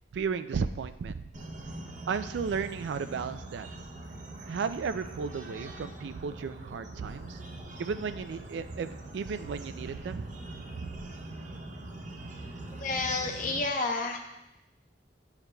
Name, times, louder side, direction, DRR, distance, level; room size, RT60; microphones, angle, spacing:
voice 1, 0.1-1.2 2.1-3.7 4.5-7.4 7.8-10.3 10.8-10.9, right 5 dB, 75° right, 11 dB, 0.3 m, -34 dB
sound 1, 1.3-13.7, right 2 dB, 45° right, 0.7 m, -43 dB
voice 2, 12.8-14.2, left 3 dB, 45° left, 3 dB, 0.8 m, -30 dB
10.5 x 4.8 x 2.2 m, 0.94 s
head